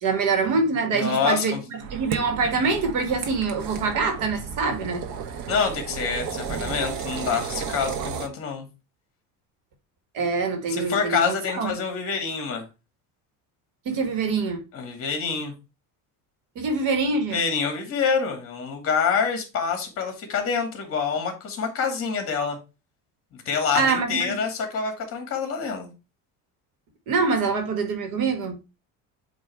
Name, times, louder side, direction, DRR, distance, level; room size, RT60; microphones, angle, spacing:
voice 1, 0.0-5.0 10.1-11.8 13.9-14.6 16.6-17.4 23.7-24.4 27.1-28.6, right 4 dB, 60° right, 2.0 m, -25 dB
voice 2, 0.9-1.6 5.5-8.6 10.7-12.6 14.7-15.5 17.3-22.6 23.3-25.9, left 6 dB, 40° left, 2.3 m, -26 dB
sound 1, 1.8-8.3, right 6 dB, 80° right, 1.2 m, -33 dB
8.6 x 3.1 x 4.5 m
cardioid pair, 160°, 35 cm